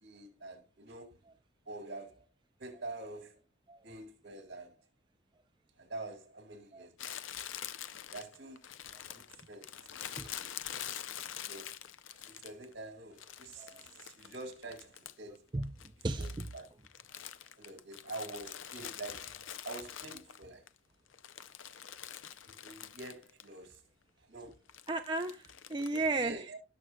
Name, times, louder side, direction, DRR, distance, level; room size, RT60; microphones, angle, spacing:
voice 1, 0.0-1.2 1.7-2.3 2.6-3.4 3.8-4.8 5.8-7.2 8.1-8.7 9.1-10.0 10.4-10.5 11.4-11.8 12.3-15.5 16.5-16.7 17.5-20.6 22.6-23.8 24.3-24.6 26.2-26.6, right 2 dB, 65° right, 2.3 m, -46 dB
Crumpling crinkling, 7.0-12.7 13.2-15.4 15.6-20.7 21.1-23.5 23.7-23.8 24.7-26.1, left 10 dB, 85° left, 0.5 m, -45 dB
voice 2, 16.0-16.5 24.9-26.5, right 2 dB, 25° right, 0.5 m, -34 dB
18.0 x 6.3 x 2.3 m
head